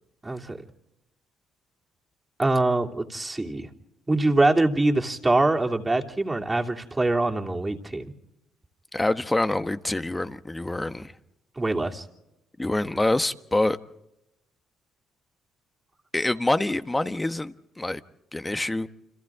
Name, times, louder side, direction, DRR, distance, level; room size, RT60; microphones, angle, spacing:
voice 1, 0.2-0.6 2.4-3.7 4.1-8.1 11.6-12.0, right 2 dB, 20° right, 2.9 m, -24 dB
voice 2, 8.9-11.1 12.6-13.8 16.1-18.0 18.3-18.9, left 2 dB, 15° left, 1.3 m, -26 dB
29.5 x 26.0 x 3.7 m
hypercardioid pair, 55°, 0 cm